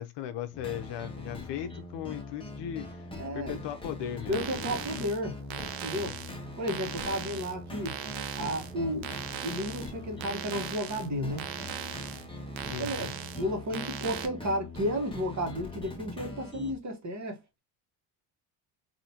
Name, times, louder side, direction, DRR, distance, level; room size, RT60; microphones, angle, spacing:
voice 1, 0.0-3.1 3.3-5.0 5.9-6.2 7.0-7.2 12.6-13.1, left 10 dB, 55° left, 0.7 m, -38 dB
sound 1, 0.5-16.7, left 2 dB, 10° left, 1.1 m, -42 dB
voice 2, 3.2-3.6 4.3-5.4 5.8-6.1 6.6-8.0 8.3-9.2 9.4-11.5 12.8-13.1 13.4-17.4, equal, 35° right, 1.4 m, -32 dB
sound 2, 4.2-14.3, right 10 dB, 70° right, 0.8 m, -40 dB
4.1 x 2.8 x 2.8 m
supercardioid pair, 105°, 50 cm